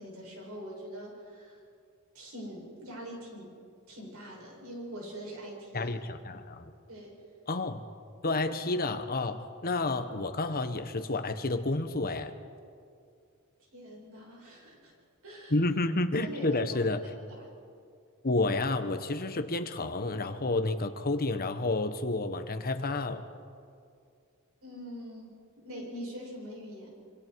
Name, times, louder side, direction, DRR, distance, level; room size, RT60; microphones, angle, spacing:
voice 1, 0.0-1.6 2.1-3.5 3.9-6.0 6.9-7.2 13.7-14.9 15.2-15.6 16.2-16.6 16.9-17.0 17.3-17.4 24.6-26.9, equal, 75° right, -2 dB, 7.4 m, -43 dB
voice 2, 5.7-6.7 7.5-7.8 8.2-12.3 15.5-17.0 18.2-23.2, left 2 dB, 45° left, 9 dB, 1.2 m, -30 dB
26.5 x 25.5 x 4.7 m, 2.3 s
head